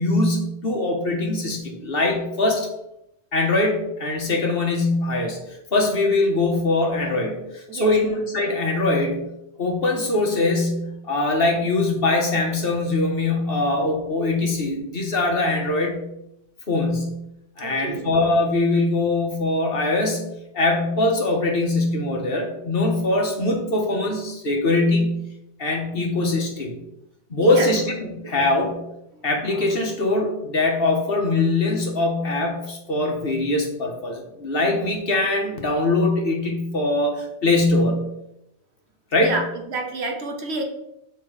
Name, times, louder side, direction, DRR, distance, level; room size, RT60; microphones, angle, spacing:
voice 1, 0.0-2.7 3.3-5.4 5.7-9.2 9.6-16.0 16.7-17.2 17.6-20.3 20.5-25.1 25.6-26.7 27.3-28.8 29.2-38.0 39.1-39.3, left 2 dB, 55° left, 1 dB, 1.4 m, -22 dB
voice 2, 7.7-8.0 17.6-18.1 27.4-27.7 39.2-40.6, right 3 dB, 70° right, 2 dB, 1.3 m, -29 dB
6.9 x 3.5 x 4.8 m, 0.84 s
omnidirectional pair, 1.2 m